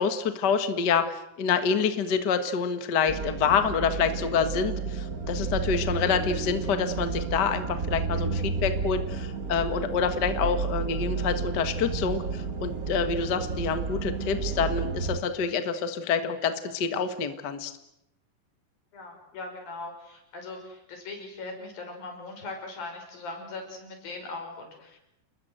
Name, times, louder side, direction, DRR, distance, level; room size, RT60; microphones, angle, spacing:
voice 1, 0.0-17.7, left 6 dB, 40° left, 9 dB, 1.6 m, -27 dB
sound 1, 3.1-15.2, right 4 dB, 35° right, 1.6 m, -31 dB
voice 2, 18.9-25.0, left 3 dB, 85° left, 3 dB, 7.7 m, -40 dB
29.0 x 21.5 x 8.0 m, 0.84 s
omnidirectional pair, 4.0 m